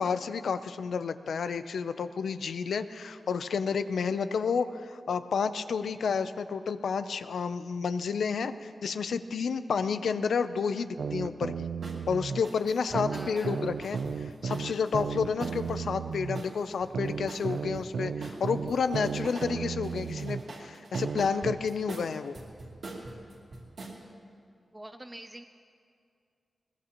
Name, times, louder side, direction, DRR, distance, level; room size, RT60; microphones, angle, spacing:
voice 1, 0.0-11.7 12.1-22.3, left 5 dB, 85° left, 11 dB, 0.5 m, -30 dB
sound 1, 11.0-12.4 12.9-16.4 16.9-20.4 20.9-21.6, right 6 dB, 85° right, 0.4 m, -34 dB
sound 2, 11.8-12.0 12.4-15.8 16.3-17.9 18.2-19.5 19.8-24.0, right 2 dB, 60° right, 2.6 m, -44 dB
voice 2, 12.9-13.6 24.7-25.4, right 1 dB, 10° right, 7 dB, 0.4 m, -44 dB
21.0 x 20.5 x 3.0 m, 2.4 s
wide cardioid pair, 165°, 0 cm